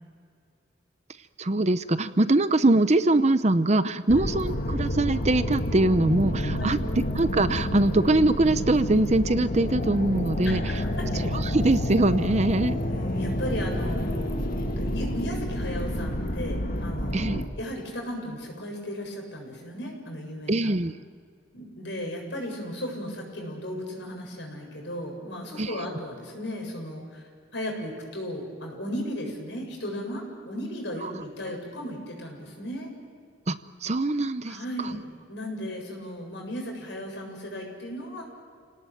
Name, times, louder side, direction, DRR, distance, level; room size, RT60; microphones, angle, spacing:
voice 1, 1.4-6.8 7.2-10.8 11.2-12.8 17.1-17.4 20.5-20.9 25.6-25.7 31.0-31.1 33.5-34.6 34.8-34.9, right 2 dB, 35° right, 12 dB, 0.8 m, -23 dB
sound 1, 4.1-17.5, left 1 dB, 50° left, 2.0 m, -29 dB
voice 2, 10.4-11.1 12.9-14.4 14.8-20.6 21.5-27.2 27.5-32.9 34.4-35.0 35.3-38.2, equal, 65° left, 1 dB, 7.6 m, -35 dB
29.5 x 18.5 x 9.2 m, 2.1 s
head